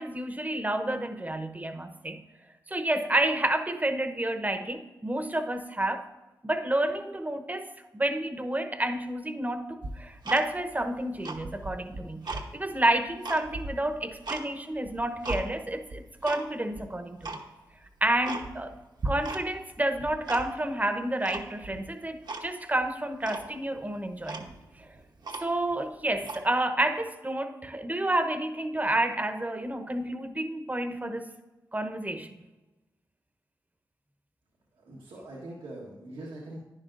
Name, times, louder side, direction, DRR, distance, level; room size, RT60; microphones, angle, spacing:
voice 1, 0.0-2.2 2.7-6.1 6.4-17.4 18.0-18.7 19.0-24.5 25.4-31.3 31.7-32.4, right 1 dB, 20° right, 9 dB, 0.9 m, -30 dB
Tick-tock, 9.8-10.8 11.1-12.5 12.9-14.4 14.8-15.4 15.9-16.4 16.7-16.8 17.2-17.4 17.8-17.9 18.2-18.7 19.0-19.7 19.9-20.7 21.2-21.8 22.3-22.5 22.8-22.9 23.2-23.5 23.9-24.0 24.2-25.7 26.2-26.4, right 3 dB, 60° right, 1.0 m, -37 dB
voice 2, 34.7-36.6, right 1 dB, 90° right, -4 dB, 1.4 m, -42 dB
10.5 x 9.8 x 2.6 m, 1.1 s
supercardioid pair, 40°, 8 cm